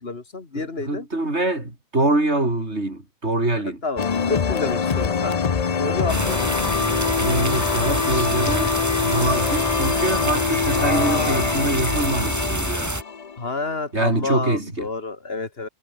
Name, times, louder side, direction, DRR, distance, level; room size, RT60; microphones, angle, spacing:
voice 1, 0.0-1.1 3.8-5.4 5.8-6.4 10.7-11.6 13.4-15.7, left 3 dB, 65° left, 2.5 m, -29 dB
voice 2, 0.5-3.8 7.2-8.8 9.0-12.9 13.9-14.9, right 2 dB, 80° right, 5.6 m, -24 dB
sound 1, 4.0-13.8, left 6 dB, 40° left, 0.8 m, -24 dB
sound 2, 6.1-13.0, right 1 dB, 15° right, 2.6 m, -26 dB
omnidirectional pair, 1.1 m